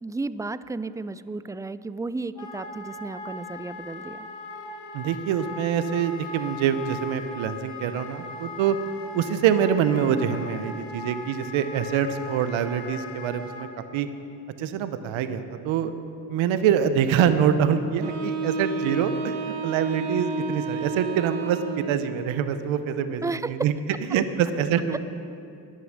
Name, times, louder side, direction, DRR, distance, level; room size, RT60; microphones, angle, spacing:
voice 1, 0.0-4.3 23.2-23.7 24.9-25.0, right 3 dB, 10° right, 15 dB, 0.4 m, -33 dB
Wind instrument woodwind instrument, 2.3-13.7, left 3 dB, 40° left, 2.5 m, -39 dB
voice 2, 4.9-8.8 9.1-13.7 13.9-14.1 14.6-15.9 16.3-23.7 24.1-25.0, right 8 dB, 85° right, 11 dB, 0.8 m, -25 dB
Wind instrument woodwind instrument 2, 18.0-22.1, right 4 dB, 60° right, 2.4 m, -31 dB
13.5 x 9.8 x 6.4 m, 2.6 s
supercardioid pair, 50°, 46 cm